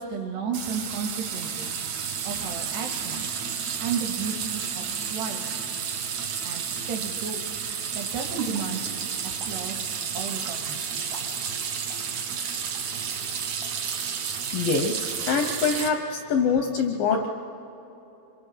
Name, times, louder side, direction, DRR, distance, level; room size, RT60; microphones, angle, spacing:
voice 1, 0.0-1.7 2.2-3.3 3.8-4.8 5.1-5.6 6.4-7.4 8.0-8.8 9.5-11.0, right 6 dB, 70° right, 4 dB, 3.6 m, -33 dB
sound 1, 0.5-15.9, right 7 dB, 85° right, 1.6 m, -31 dB
voice 2, 14.5-17.3, left 5 dB, 85° left, 4 dB, 2.0 m, -24 dB
26.0 x 23.5 x 5.8 m, 3.0 s
omnidirectional pair, 5.3 m